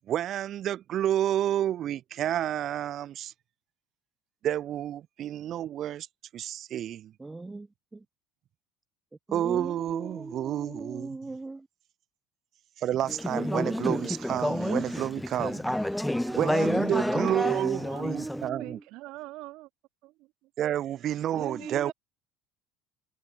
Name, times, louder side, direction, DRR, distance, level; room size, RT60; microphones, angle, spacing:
voice 1, 0.0-3.3 4.4-6.1 6.3-7.1 9.3-11.1 12.8-15.9 16.3-18.8 20.6-21.9, right 11 dB, 50° right, 0.6 m, -30 dB
voice 2, 7.2-8.1 9.3-11.7 16.0-18.8 21.3-21.9, right 3 dB, 15° right, 4.3 m, -40 dB
Conversation / Chatter, 13.1-18.5, left 1 dB, 5° left, 0.6 m, -29 dB
voice 3, 17.2-18.1 18.6-19.7 20.0-20.5 21.3-21.9, right 19 dB, 65° right, 6.5 m, -43 dB
supercardioid pair, 90°, 0 cm